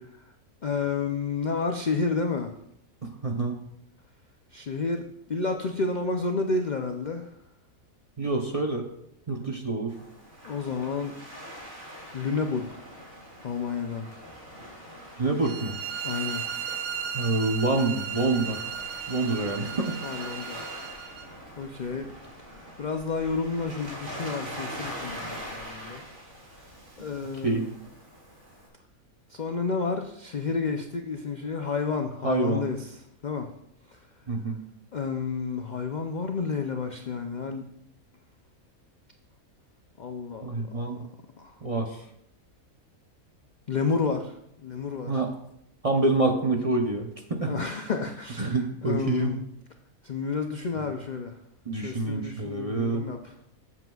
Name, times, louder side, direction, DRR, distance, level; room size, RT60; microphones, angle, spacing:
voice 1, 0.6-2.5 4.5-5.0 5.3-7.3 10.4-11.2 12.1-12.7 13.4-14.1 16.0-16.4 19.4-19.5 20.0-20.6 21.6-22.1 22.4-26.0 27.0-27.7 29.3-33.5 33.9-34.0 34.9-37.7 40.0-40.5 41.4-41.6 43.7-45.2 47.4-49.4 50.0-51.4 51.8-53.3, left 4 dB, 55° left, 5 dB, 0.5 m, -30 dB
voice 2, 3.0-3.6 8.2-8.9 9.3-9.9 15.2-15.8 17.1-18.6 19.1-20.0 27.4-27.6 32.2-32.6 34.3-34.6 40.4-41.0 41.6-42.0 45.1-45.3 45.8-47.5 48.4-49.4 50.8-50.9 51.7-53.0, right 2 dB, 35° right, 2 dB, 0.6 m, -27 dB
Waves surf, 9.9-28.7, equal, 55° right, 2.6 m, -43 dB
sound 1, 15.4-21.3, right 8 dB, 75° right, 1.2 m, -36 dB
13.5 x 7.5 x 2.4 m, 0.76 s
omnidirectional pair, 1.5 m